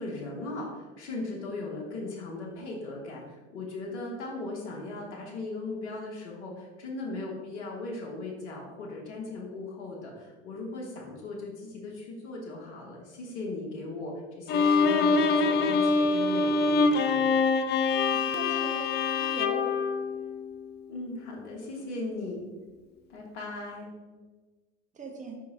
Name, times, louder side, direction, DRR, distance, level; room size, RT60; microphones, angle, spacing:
voice 1, 0.0-17.4 20.9-22.5 23.1-23.9, left 2 dB, 65° left, -2 dB, 1.6 m, -38 dB
Bowed string instrument, 14.5-20.8, left 4 dB, 30° left, 0.4 m, -25 dB
voice 2, 18.1-19.7 24.9-25.4, right 3 dB, 20° right, 1 dB, 1.3 m, -40 dB
5.4 x 4.5 x 3.9 m, 1.3 s
hypercardioid pair, 85°, 36 cm